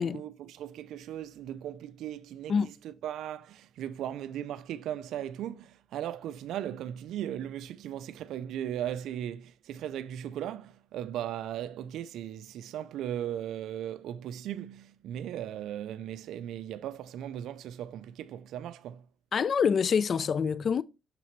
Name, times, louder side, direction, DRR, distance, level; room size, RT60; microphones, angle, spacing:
voice 1, 0.0-19.1, right 11 dB, 80° right, 0.4 m, -37 dB
voice 2, 19.3-20.8, left 6 dB, 50° left, 0.4 m, -26 dB
6.6 x 5.9 x 3.0 m
cardioid pair, 90°, 0 cm